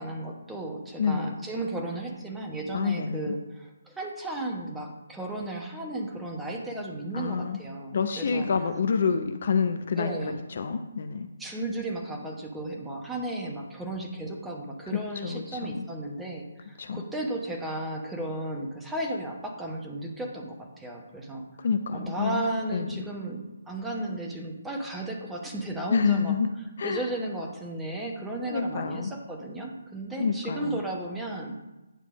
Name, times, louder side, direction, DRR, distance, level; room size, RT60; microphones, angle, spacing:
voice 1, 0.0-8.5 10.0-10.3 11.4-21.4 21.9-26.3 26.8-31.5, right 2 dB, 5° right, 0 dB, 1.0 m, -34 dB
voice 2, 1.0-1.4 2.7-3.3 7.1-7.6 7.9-10.1 10.5-11.3 14.9-15.9 16.8-17.0 21.6-22.4 22.7-23.0 25.9-26.5 26.8-27.1 28.5-29.1 30.2-30.8, left 6 dB, 50° left, 8 dB, 0.5 m, -28 dB
9.0 x 3.3 x 6.3 m, 1.0 s
figure-of-eight pair, 140°, 0 cm